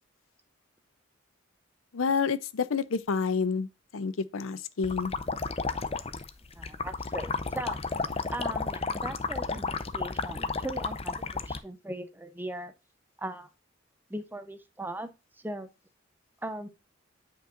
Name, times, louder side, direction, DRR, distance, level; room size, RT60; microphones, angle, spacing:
voice 1, 1.9-5.1, left 5 dB, 90° left, 0.6 m, -29 dB
sound 1, 4.8-11.6, left 4 dB, 30° left, 0.6 m, -32 dB
voice 2, 6.6-7.8 8.3-12.7 13.2-13.5 14.1-15.1 15.4-15.7 16.4-16.7, right 1 dB, 10° right, 0.8 m, -38 dB
9.0 x 5.3 x 2.5 m
head